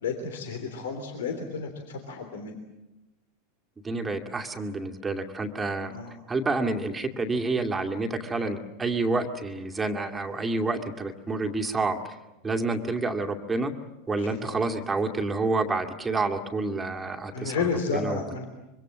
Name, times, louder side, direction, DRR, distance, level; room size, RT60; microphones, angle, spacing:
voice 1, 0.0-2.6 5.9-6.1 14.2-14.7 17.3-18.4, left 5 dB, 60° left, 6 dB, 3.3 m, -32 dB
voice 2, 3.8-5.9 6.3-12.1 12.4-13.7 14.1-18.2, right 3 dB, 15° right, 4 dB, 2.4 m, -28 dB
25.5 x 24.5 x 7.5 m, 1.0 s
figure-of-eight pair, 85°, 0 cm